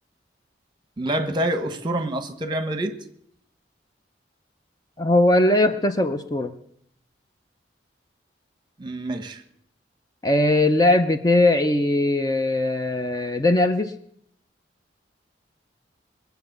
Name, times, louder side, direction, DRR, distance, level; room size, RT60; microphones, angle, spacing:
voice 1, 1.0-3.0 8.8-9.4, right 1 dB, 25° right, 8 dB, 1.2 m, -27 dB
voice 2, 5.0-6.5 10.2-13.9, left 1 dB, 20° left, 7 dB, 0.6 m, -20 dB
21.0 x 8.0 x 6.7 m, 0.70 s
head